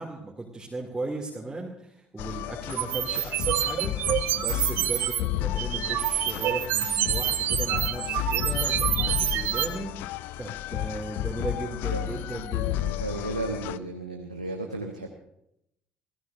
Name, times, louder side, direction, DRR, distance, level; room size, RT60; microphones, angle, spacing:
voice 1, 0.0-13.0, right 2 dB, 15° right, -3 dB, 2.7 m, -37 dB
sound 1, 2.2-13.8, left 13 dB, 60° left, 0.5 m, -32 dB
sound 2, 2.7-5.2 5.6-9.7, right 12 dB, 55° right, 0.9 m, -27 dB
voice 2, 12.8-15.1, right 2 dB, 90° right, 1 dB, 1.1 m, -34 dB
28.0 x 16.5 x 2.7 m, 0.78 s
figure-of-eight pair, 50°, 4 cm